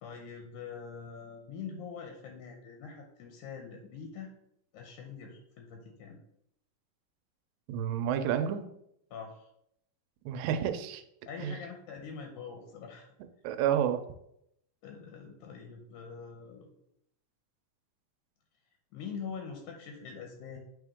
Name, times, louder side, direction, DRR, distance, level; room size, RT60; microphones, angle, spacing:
voice 1, 0.0-4.3 4.7-6.2 9.1-9.5 11.3-13.1 14.8-16.7 18.9-20.6, left 6 dB, 75° left, 3 dB, 2.0 m, -44 dB
voice 2, 7.7-8.7 10.3-11.0 11.4-11.6 13.4-14.0, right 9 dB, 85° right, 9 dB, 2.3 m, -30 dB
8.8 x 3.6 x 3.5 m, 0.76 s
omnidirectional pair, 4.0 m